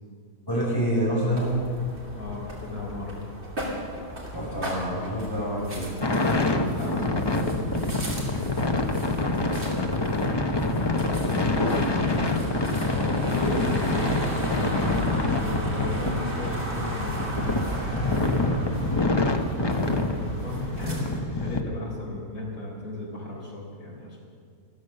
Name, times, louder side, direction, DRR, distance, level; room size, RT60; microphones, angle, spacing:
voice 1, 0.5-1.6 4.3-5.9, equal, 15° left, -6 dB, 5.5 m, -26 dB
sound 1, 1.3-21.2, equal, 40° right, 3.1 m, -35 dB
voice 2, 2.2-3.2 6.5-7.9 8.3-19.1 19.7-24.2, left 1 dB, 60° left, -3 dB, 4.5 m, -36 dB
sound 2, 6.0-21.6, left 2 dB, 30° left, 0.5 m, -26 dB
14.0 x 13.5 x 6.6 m, 2.1 s
omnidirectional pair, 1.8 m